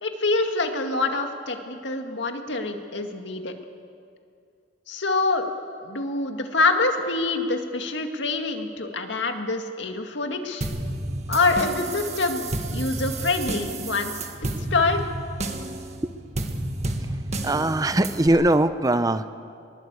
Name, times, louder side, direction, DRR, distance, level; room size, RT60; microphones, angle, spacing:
voice 1, 0.0-3.5 4.9-5.5 5.8-10.7 11.3-14.1 14.4-15.1, left 3 dB, 70° left, 5 dB, 2.1 m, -25 dB
sound 1, 10.6-18.3, right 2 dB, 35° right, 1.7 m, -31 dB
voice 2, 17.4-19.3, right 1 dB, 20° right, 11 dB, 0.6 m, -21 dB
22.0 x 20.5 x 8.3 m, 2.4 s
head